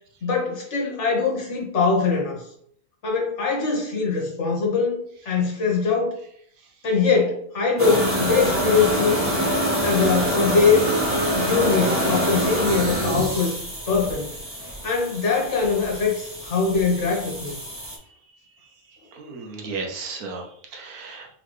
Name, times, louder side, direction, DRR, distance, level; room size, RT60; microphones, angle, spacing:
voice 1, 0.2-2.4 3.0-5.0 5.2-6.2 6.8-9.3 9.8-10.8 11.3-13.5 13.9-14.3 14.8-17.6, left 5 dB, 55° left, -1 dB, 1.4 m, -22 dB
sound 1, 7.8-18.0, right 1 dB, 10° right, 0.8 m, -25 dB
voice 2, 18.9-21.3, right 4 dB, 75° right, 1 dB, 1.3 m, -35 dB
4.0 x 3.6 x 3.1 m, 0.64 s
omnidirectional pair, 1.6 m